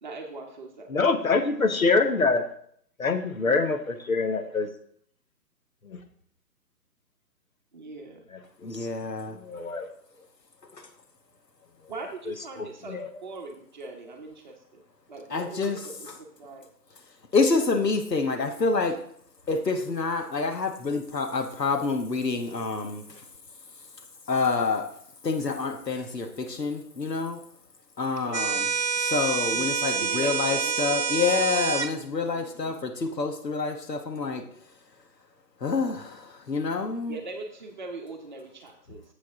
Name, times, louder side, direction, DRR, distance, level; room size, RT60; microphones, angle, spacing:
voice 1, 0.0-1.3 3.5-3.8 7.7-8.2 11.9-14.8 15.1-16.7 28.2-28.6 29.5-31.3 32.3-32.6 37.1-39.0, right 3 dB, 30° right, 2 dB, 1.2 m, -41 dB
voice 2, 0.9-2.4 3.0-4.7 5.9-6.0 8.7-8.9 9.3-9.9 12.6-13.1, left 4 dB, 55° left, 7 dB, 1.1 m, -25 dB
voice 3, 8.6-9.4 15.3-15.8 17.3-19.0 19.5-23.2 24.3-24.9 25.2-27.4 28.0-28.7 29.0-34.4 35.6-37.2, left 4 dB, 80° left, 6 dB, 1.3 m, -27 dB
sound 1, 28.3-31.9, right 6 dB, 90° right, 0.8 m, -27 dB
8.5 x 7.7 x 3.7 m, 0.64 s
figure-of-eight pair, 140°, 49 cm